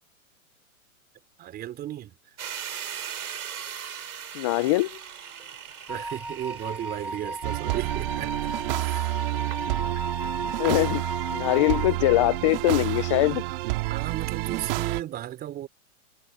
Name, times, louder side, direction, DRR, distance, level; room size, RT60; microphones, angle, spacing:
voice 1, 1.4-2.2 5.9-8.5 8.8-9.2 9.6-9.8 13.9-15.7, right 12 dB, 20° right, 3.7 m, -35 dB
sound 1, 2.4-12.0, right 8 dB, 90° right, 4.1 m, -41 dB
voice 2, 4.3-5.0 10.6-11.0 11.3-13.4, left 19 dB, 25° left, 0.4 m, -22 dB
Wind instrument woodwind instrument, 5.9-12.0, right 1 dB, 5° right, 2.7 m, -35 dB
sound 2, 7.4-15.0, right 22 dB, 40° right, 2.1 m, -29 dB
hypercardioid pair, 145°, 43 cm